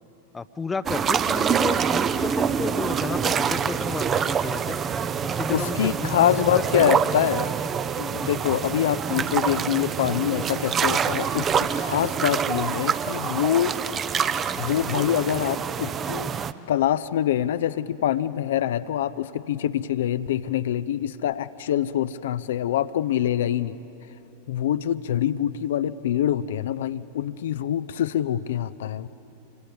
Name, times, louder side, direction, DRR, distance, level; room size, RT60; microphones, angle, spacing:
voice 1, 0.3-4.8 5.2-6.1 6.4-6.6 8.5-8.7, left 4 dB, 15° left, 14 dB, 0.7 m, -32 dB
sound 1, 0.9-16.5, right 7 dB, 25° right, 0.7 m, -26 dB
voice 2, 5.5-7.5 8.0-13.7 14.6-16.3 16.7-23.8 24.5-29.1, left 11 dB, 60° left, 13 dB, 0.6 m, -25 dB
27.0 x 24.5 x 8.4 m, 2.9 s
figure-of-eight pair, 90°, 0 cm